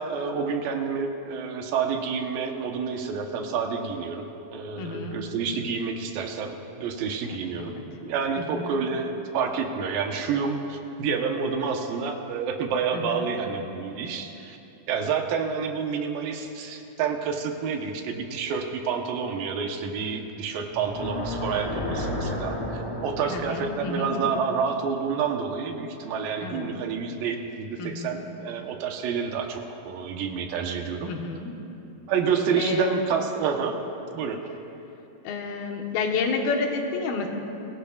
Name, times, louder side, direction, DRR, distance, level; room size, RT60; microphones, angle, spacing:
voice 1, 0.0-7.7 8.0-14.6 14.9-31.1 32.1-33.8 34.1-34.4, right 6 dB, 80° right, 3 dB, 2.7 m, -29 dB
voice 2, 4.8-5.2 7.2-7.8 8.4-8.8 12.9-13.3 23.3-24.2 26.4-26.6 27.8-28.2 31.1-31.5 32.5-33.0 35.2-37.3, left 4 dB, 90° left, 1 dB, 3.1 m, -30 dB
sound 1, 20.7-25.8, left 1 dB, 10° left, 1.6 m, -33 dB
24.5 x 17.0 x 2.4 m, 2.9 s
omnidirectional pair, 4.1 m